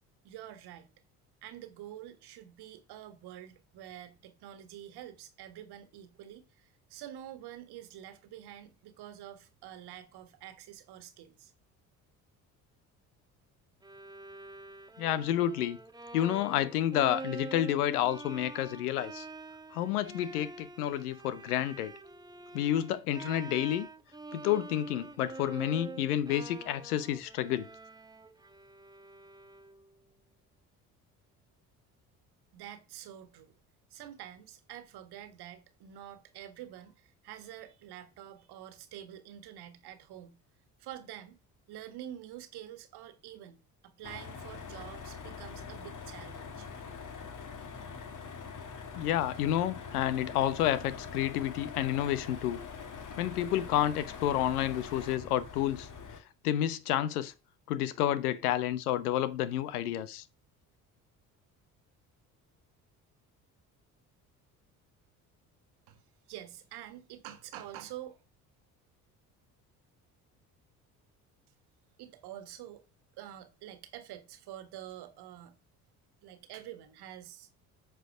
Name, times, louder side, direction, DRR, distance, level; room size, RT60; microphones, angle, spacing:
voice 1, 0.2-0.9 1.4-11.5 32.5-33.5 33.9-40.4 40.8-41.4 41.7-46.7 65.9-66.0 66.3-68.2 72.0-72.8 73.2-75.6 76.2-77.5, right 11 dB, 60° right, 1.6 m, -47 dB
Bowed string instrument, 13.8-29.9, right 3 dB, 10° right, 0.8 m, -46 dB
voice 2, 15.0-15.8 16.1-19.3 19.7-21.9 22.5-23.9 24.3-27.7 48.9-52.6 53.2-55.9 56.4-57.3 57.7-60.2, left 12 dB, 75° left, 0.9 m, -30 dB
sound 1, 44.0-56.2, left 5 dB, 45° left, 1.8 m, -44 dB
9.0 x 4.7 x 6.1 m
figure-of-eight pair, 50°, 45 cm